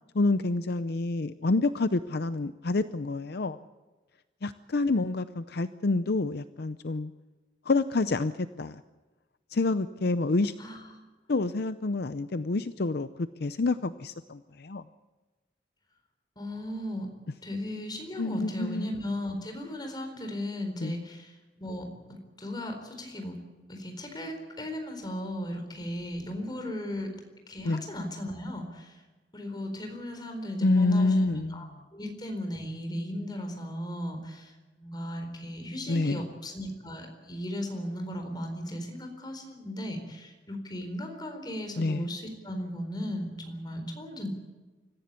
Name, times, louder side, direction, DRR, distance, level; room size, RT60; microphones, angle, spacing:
voice 1, 0.1-3.6 4.4-7.1 7.7-8.3 8.6-8.8 9.5-10.5 11.3-14.8 18.2-19.0 20.8-21.0 27.6-27.8 30.6-31.7 35.9-36.2 41.8-42.1, left 3 dB, 60° left, 12 dB, 0.6 m, -28 dB
voice 2, 10.6-10.9 16.4-17.1 17.4-23.4 23.7-27.1 27.5-29.0 29.3-31.6 31.9-44.3, left 1 dB, 25° left, 4 dB, 4.4 m, -36 dB
25.5 x 15.0 x 8.4 m, 1.2 s
head